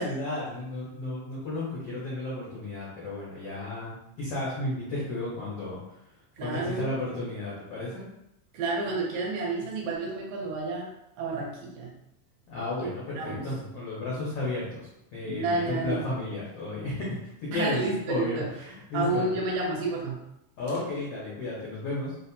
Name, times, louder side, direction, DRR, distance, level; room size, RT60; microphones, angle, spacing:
voice 1, 0.0-6.0 6.4-8.0 12.5-17.8 18.1-19.3 20.6-22.1, left 2 dB, 90° left, -8 dB, 1.3 m, -33 dB
voice 2, 6.4-7.0 8.5-11.9 12.8-12.9 13.2-13.6 15.2-16.1 17.5-18.5 18.9-20.2, right 3 dB, 80° right, -1 dB, 2.4 m, -30 dB
6.2 x 2.2 x 2.7 m, 0.83 s
omnidirectional pair, 4.4 m